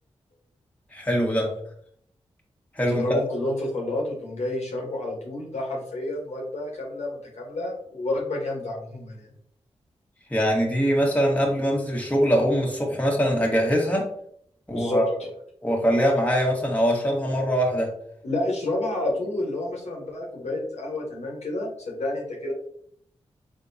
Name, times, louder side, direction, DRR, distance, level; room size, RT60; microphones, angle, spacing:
voice 1, 0.9-1.5 2.7-3.2 10.3-14.1 14.7-15.1 15.6-17.9, equal, 10° left, -1 dB, 1.4 m, -22 dB
voice 2, 2.9-9.3 14.7-15.3 18.2-22.5, left 2 dB, 70° left, -1 dB, 1.2 m, -29 dB
3.8 x 3.6 x 2.7 m, 0.66 s
cardioid pair, 45°, 12 cm